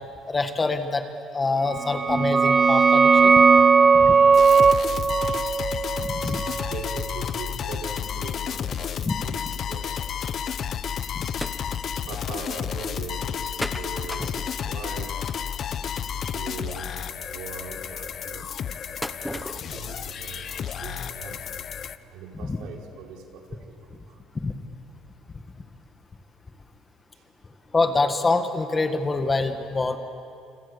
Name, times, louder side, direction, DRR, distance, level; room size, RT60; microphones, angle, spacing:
voice 1, 0.3-1.1 1.3-3.3 3.9-4.2 6.0-6.4 9.0-9.1 22.4-22.6 24.4-24.5 27.7-30.0, left 3 dB, 20° left, 7 dB, 1.8 m, -25 dB
sound 1, 1.7-7.2, right 5 dB, 30° right, 0.6 m, -18 dB
sound 2, 4.3-22.0, left 8 dB, 45° left, 0.9 m, -31 dB
voice 2, 6.6-9.9 12.1-14.3 14.6-15.3 16.1-17.0 17.3-18.5 19.3-21.6 22.1-23.8 24.1-24.2, right 5 dB, 75° right, 1 dB, 4.4 m, -40 dB
sound 3, 11.4-11.6 12.1-12.2 12.4-12.5 13.6-14.9 16.6-16.7 19.0-19.7 20.1-20.2 20.7-20.8 21.4-21.5 21.7-21.8, equal, ahead, 0.9 m, -34 dB
29.0 x 27.0 x 7.1 m, 2.6 s
cardioid pair, 115°, 0 cm